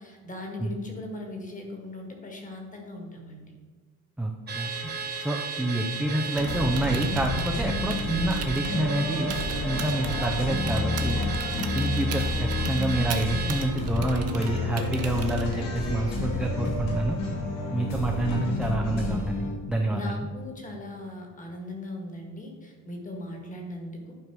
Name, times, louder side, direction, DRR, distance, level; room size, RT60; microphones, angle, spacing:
voice 1, 0.0-3.5 19.9-24.1, left 1 dB, 25° left, 2 dB, 1.7 m, -39 dB
voice 2, 4.2-4.7 5.2-9.3 9.6-11.2 11.7-17.2 17.7-20.3, right 1 dB, 5° right, 1 dB, 0.4 m, -28 dB
Car / Alarm, 4.5-13.7, right 5 dB, 30° right, 1.1 m, -34 dB
Typing, 6.2-15.8, right 6 dB, 50° right, 0.9 m, -40 dB
sound 1, 6.4-19.5, left 2 dB, 75° left, 2.5 m, -30 dB
11.0 x 5.3 x 4.6 m, 1.5 s
cardioid pair, 175°, 33 cm